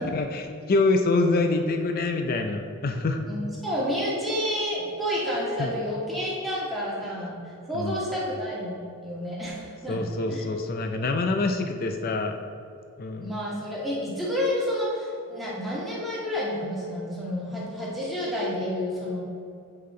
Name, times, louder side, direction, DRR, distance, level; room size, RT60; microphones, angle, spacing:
voice 1, 0.0-3.2 5.6-5.7 7.7-8.0 9.9-12.4 13.0-13.3, left 3 dB, 40° left, 5 dB, 0.4 m, -26 dB
voice 2, 3.3-7.4 7.6-8.8 9.0-10.0 10.3-10.4 13.2-19.2, equal, ahead, -7 dB, 1.6 m, -29 dB
7.8 x 5.6 x 3.8 m, 2.4 s
head